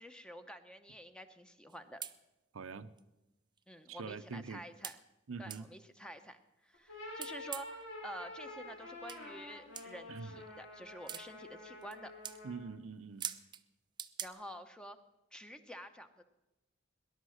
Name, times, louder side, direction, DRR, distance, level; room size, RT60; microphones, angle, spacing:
voice 1, 0.0-2.0 3.7-5.0 5.4-12.1 14.2-15.0 15.3-16.2, equal, 5° left, 9 dB, 0.8 m, -49 dB
sound 1, 1.7-1.8 2.0-2.2 3.0-3.1 3.6-3.7 4.8-5.0 5.5-5.6 7.1-7.8 9.1-9.2 9.7-9.9 11.1-11.3 11.8-12.0 12.2-12.4 13.2-13.6 14.0-14.3, right 8 dB, 20° right, 0.5 m, -42 dB
voice 2, 2.5-2.9 3.9-4.6 5.3-5.7 10.1-10.4 12.4-13.3, right 4 dB, 85° right, 11 dB, 0.7 m, -44 dB
sound 2, 6.7-12.8, left 1 dB, 85° left, 6.7 m, -48 dB
19.5 x 11.0 x 6.4 m, 1.0 s
head